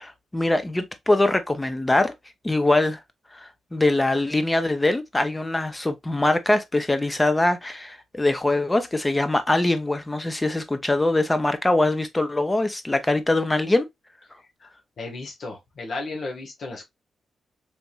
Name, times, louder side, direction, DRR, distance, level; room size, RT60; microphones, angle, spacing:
voice 1, 0.0-2.1 2.4-3.0 3.3-13.9, left 2 dB, 20° left, 0.7 m, -23 dB
voice 2, 14.6-16.8, left 3 dB, 65° left, 1.2 m, -34 dB
3.4 x 2.9 x 2.4 m
cardioid pair, 70°, 0 cm